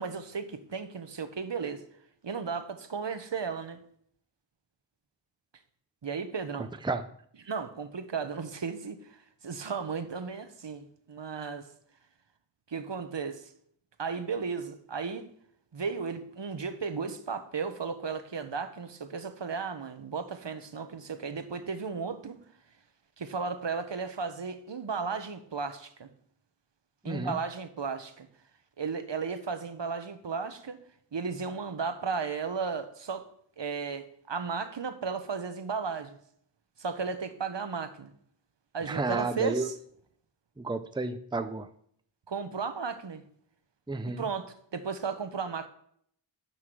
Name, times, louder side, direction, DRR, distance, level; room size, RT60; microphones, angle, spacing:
voice 1, 0.0-1.8 2.2-3.8 6.0-6.8 7.4-9.2 9.4-11.7 12.7-13.5 14.0-15.3 15.7-22.4 23.2-26.1 27.0-28.3 28.8-30.8 31.1-33.3 33.6-36.2 36.8-38.1 38.7-39.7 42.3-43.2 44.2-45.7, right 5 dB, 70° right, 1.1 m, -34 dB
voice 2, 27.1-27.4 38.9-39.7 40.6-41.7 43.9-44.2, right 3 dB, 10° right, 0.6 m, -31 dB
9.5 x 5.9 x 6.2 m
wide cardioid pair, 70°, 45 cm